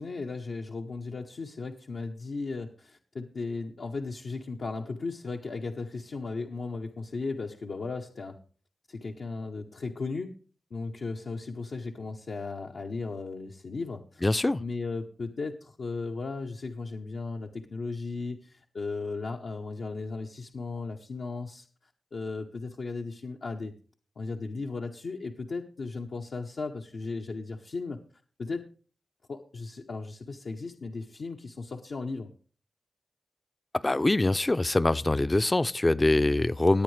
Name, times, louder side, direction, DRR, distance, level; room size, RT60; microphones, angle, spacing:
voice 1, 0.0-8.4 8.9-10.3 10.7-14.2 14.6-23.7 24.2-28.0 28.4-28.6 29.3-32.3, left 3 dB, 80° left, 0.8 m, -36 dB
voice 2, 14.2-14.6 33.7-36.8, left 2 dB, 30° left, 0.4 m, -24 dB
18.5 x 8.6 x 3.2 m
cardioid pair, 50°, 0 cm